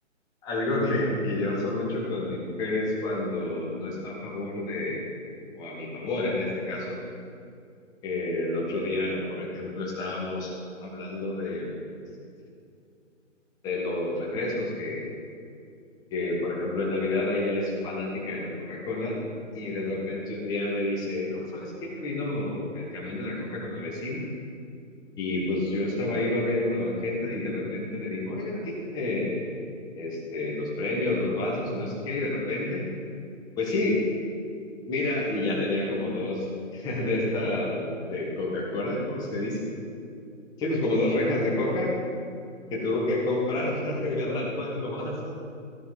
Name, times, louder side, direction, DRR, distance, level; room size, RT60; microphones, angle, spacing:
voice 1, 0.4-5.1 5.5-7.0 8.0-10.5 10.8-11.7 13.6-15.0 16.1-19.2 19.5-24.3 25.2-29.4 30.0-32.8 33.6-34.0 34.9-36.4 36.7-39.7 40.6-41.9 42.7-45.4, left 2 dB, 10° left, -5 dB, 1.4 m, -29 dB
13.5 x 5.7 x 5.9 m, 2.4 s
hypercardioid pair, 155°, 38 cm